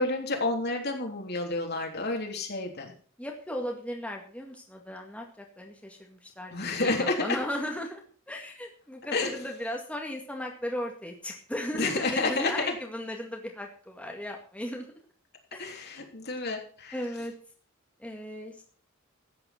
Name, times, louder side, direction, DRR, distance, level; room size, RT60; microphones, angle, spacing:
voice 1, 0.0-2.9 6.5-7.4 9.1-9.3 11.7-12.7 15.6-16.9, left 3 dB, 55° left, 2 dB, 3.3 m, -30 dB
voice 2, 3.2-14.9 15.5-15.9 16.9-17.3 18.0-18.6, left 1 dB, 5° left, 1 dB, 2.0 m, -36 dB
14.0 x 9.5 x 5.9 m, 0.43 s
head